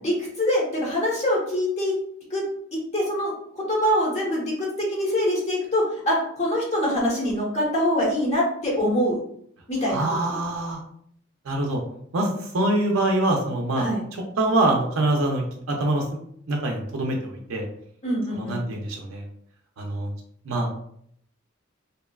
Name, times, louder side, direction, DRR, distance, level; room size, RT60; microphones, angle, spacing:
voice 1, 0.0-1.9 2.3-2.4 2.7-3.3 3.7-9.2 9.7-10.4 13.8-14.0 18.0-18.6, equal, 35° left, -4 dB, 0.8 m, -24 dB
voice 2, 9.9-10.8 11.5-11.8 12.1-13.9 14.1-16.0 16.5-17.6 18.3-19.2 19.8-20.1 20.5-20.7, right 1 dB, 85° right, 1 dB, 0.4 m, -24 dB
2.7 x 2.2 x 2.2 m, 0.67 s
head